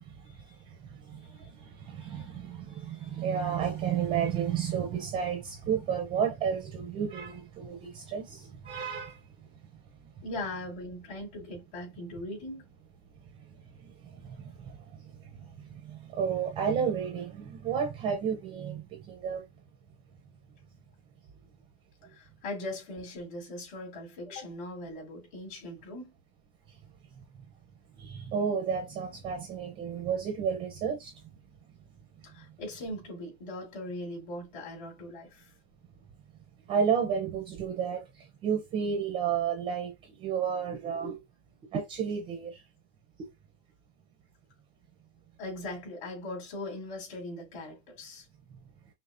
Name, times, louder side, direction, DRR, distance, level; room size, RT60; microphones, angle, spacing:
voice 1, 1.8-9.2 14.2-14.8 15.8-19.4 28.0-31.1 36.7-38.0 38.4-39.9 40.2-41.2 41.7-42.6, right 7 dB, 15° right, 0.4 m, -31 dB
voice 2, 10.2-12.6 22.1-26.1 32.2-35.5 45.4-48.3, left 1 dB, 50° left, 2.7 m, -40 dB
5.5 x 2.0 x 2.5 m
supercardioid pair, 155°, 33 cm